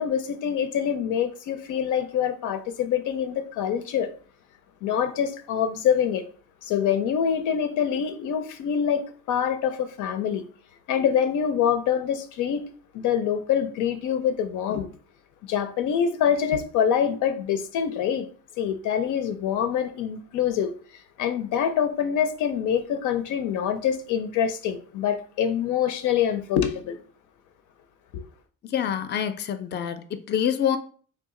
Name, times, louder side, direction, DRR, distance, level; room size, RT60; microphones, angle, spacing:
voice 1, 0.0-4.1 4.8-6.2 6.6-10.4 10.9-12.7 12.9-14.9 15.5-18.3 18.6-20.7 21.2-27.0 28.1-28.2, left 8 dB, 90° left, 0.5 m, -25 dB
voice 2, 28.6-30.8, left 9 dB, 35° left, 0.4 m, -26 dB
2.9 x 2.3 x 3.7 m
cardioid pair, 90°, 30 cm